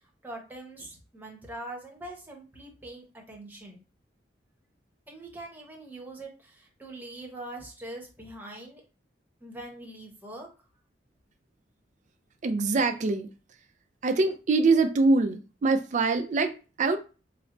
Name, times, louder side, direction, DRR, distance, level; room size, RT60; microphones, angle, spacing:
voice 1, 0.2-3.8 5.1-8.8 9.4-10.5, right 1 dB, 10° right, 0 dB, 0.9 m, -43 dB
voice 2, 12.4-13.3 14.0-17.0, right 3 dB, 45° right, 7 dB, 0.4 m, -24 dB
3.2 x 2.0 x 3.7 m, 0.33 s
head